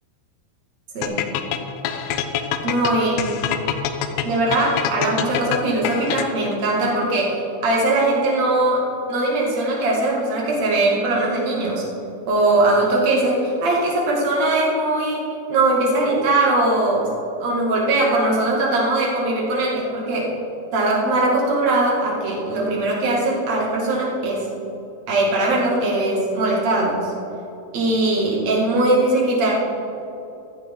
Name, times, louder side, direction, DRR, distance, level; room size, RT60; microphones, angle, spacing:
sound 1, 1.0-6.5, left 9 dB, 90° left, 2.9 m, -25 dB
voice 1, 2.6-3.3 4.2-11.8 12.3-17.1 17.4-20.3 20.7-24.5 25.1-27.1 27.7-29.5, right 2 dB, 45° right, -3 dB, 3.1 m, -20 dB
14.5 x 14.5 x 3.8 m, 2.9 s
omnidirectional pair, 4.8 m